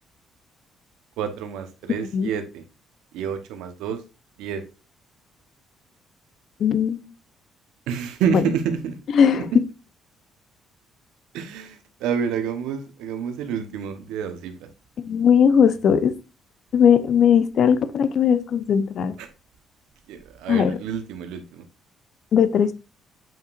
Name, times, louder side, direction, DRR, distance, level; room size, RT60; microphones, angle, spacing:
voice 1, 1.2-2.6 3.1-4.0 4.4-4.6 7.9-9.0 9.3-9.4 11.3-14.6 19.2-19.3 20.1-21.6, right 7 dB, 85° right, 1.1 m, -28 dB
voice 2, 6.6-7.1 8.3-8.4 9.1-9.6 15.0-16.1 16.7-19.1 20.5-20.8 22.3-22.7, left 7 dB, 65° left, 0.7 m, -18 dB
7.4 x 5.6 x 2.5 m
supercardioid pair, 70°, 0 cm